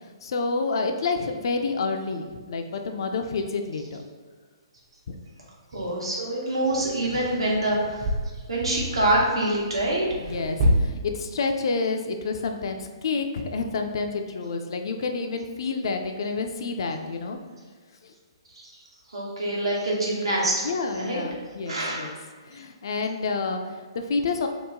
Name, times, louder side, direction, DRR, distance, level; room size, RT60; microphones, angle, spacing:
voice 1, 0.2-4.0 5.1-5.2 7.1-7.2 10.2-17.4 19.5-19.6 20.6-22.1 22.5-24.5, left 4 dB, 60° left, 5 dB, 0.3 m, -29 dB
sound 1, 4.8-4.9 5.7-5.9 6.6-10.8, equal, 45° right, 0.5 m, -29 dB
voice 2, 5.7-8.1 8.5-10.0 18.5-18.7 19.1-20.6 20.9-21.2 21.7-22.2, right 1 dB, 80° right, -4 dB, 1.0 m, -25 dB
2.9 x 2.2 x 3.6 m, 1.5 s
figure-of-eight pair, 130°, 3 cm